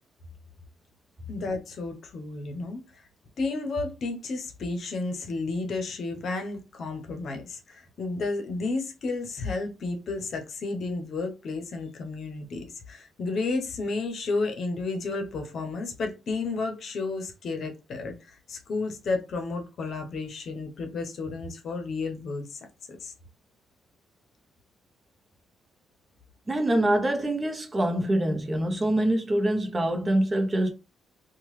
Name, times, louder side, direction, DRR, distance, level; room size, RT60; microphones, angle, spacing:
voice 1, 1.3-3.0 3.4-22.6 22.9-23.1, left 3 dB, 60° left, 0.7 m, -32 dB
voice 2, 26.5-30.7, right 1 dB, 25° right, 0.7 m, -25 dB
2.9 x 2.2 x 3.1 m
cardioid pair, 90°, 0 cm